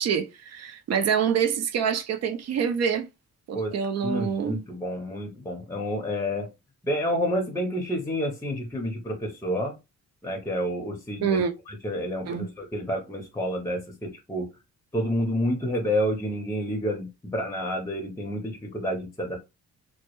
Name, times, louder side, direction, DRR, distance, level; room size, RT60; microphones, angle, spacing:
voice 1, 0.0-3.1 3.5-4.6 11.2-11.5 12.3-12.5, right 7 dB, 60° right, 0.5 m, -26 dB
voice 2, 4.0-6.5 6.8-9.7 10.2-14.5 14.9-19.4, equal, 10° left, 0.6 m, -29 dB
2.2 x 2.0 x 2.9 m
cardioid pair, 90°, 30 cm